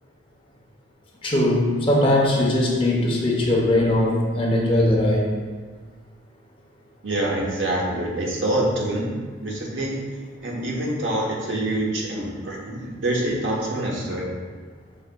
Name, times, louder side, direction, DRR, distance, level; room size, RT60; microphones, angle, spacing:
voice 1, 1.2-5.3, left 1 dB, 30° left, -2 dB, 0.7 m, -20 dB
voice 2, 7.0-9.1 9.4-10.0 10.4-14.3, right 1 dB, 90° right, -2 dB, 0.9 m, -26 dB
5.3 x 3.8 x 2.2 m, 1.5 s
head